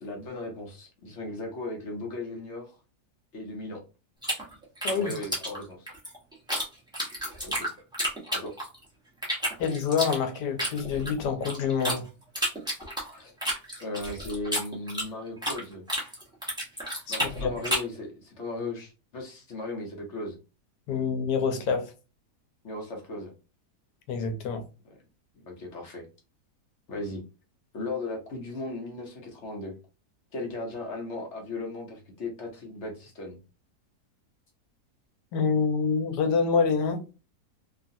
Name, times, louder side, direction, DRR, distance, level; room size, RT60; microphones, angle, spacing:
voice 1, 0.0-2.8 3.3-3.8 4.9-5.9 7.4-7.7 8.3-8.5 13.1-13.3 13.8-15.8 17.1-20.3 22.6-23.3 25.4-26.1 26.9-27.2 27.7-29.7 30.3-33.4, left 2 dB, 55° left, 0.9 m, -36 dB
sound 1, 4.2-6.6 6.9-8.8 9.2-12.0 12.3-15.6 15.9-18.0, equal, 5° right, 0.8 m, -31 dB
voice 2, 9.6-12.1 17.1-17.5 20.9-21.9 24.1-24.6 35.3-37.0, left 5 dB, 85° left, 1.3 m, -26 dB
3.0 x 2.4 x 2.6 m
omnidirectional pair, 1.8 m